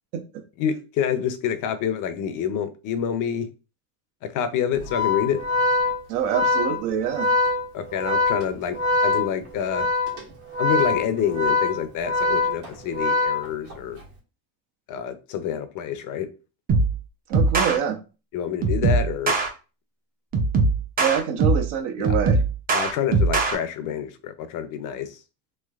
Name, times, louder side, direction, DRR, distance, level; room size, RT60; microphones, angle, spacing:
voice 1, 0.6-3.5 4.2-5.4 7.7-8.8 9.0-9.9 10.6-14.0 14.9-16.3 18.3-19.3 22.0-22.1 22.7-25.2, left 8 dB, 40° left, 11 dB, 0.5 m, -27 dB
Organ, 4.8-13.9, left 3 dB, 90° right, 1.6 m, -24 dB
voice 2, 6.1-7.3 17.3-18.0 21.0-22.4, right 8 dB, 65° right, 5 dB, 0.8 m, -25 dB
sound 1, 16.7-17.0 17.3-17.8 18.6-19.5 20.3-21.7 22.0-23.6, right 3 dB, 20° right, 0.4 m, -21 dB
3.2 x 3.1 x 2.3 m, 0.32 s
supercardioid pair, 115°, 49 cm